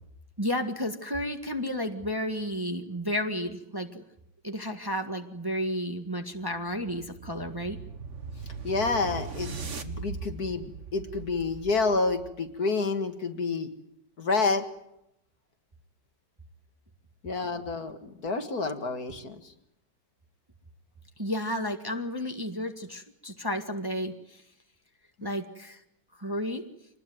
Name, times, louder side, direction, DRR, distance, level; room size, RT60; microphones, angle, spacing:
voice 1, 0.4-4.0 4.4-7.8 21.2-24.4 25.2-25.8 26.2-26.6, equal, 15° right, 5 dB, 1.6 m, -32 dB
sound 1, 6.2-12.5, right 5 dB, 40° right, 1.7 m, -40 dB
voice 2, 8.6-13.7 14.2-14.7 17.2-19.5, left 3 dB, 55° left, 7 dB, 2.4 m, -29 dB
26.0 x 20.0 x 9.3 m, 0.81 s
omnidirectional pair, 2.0 m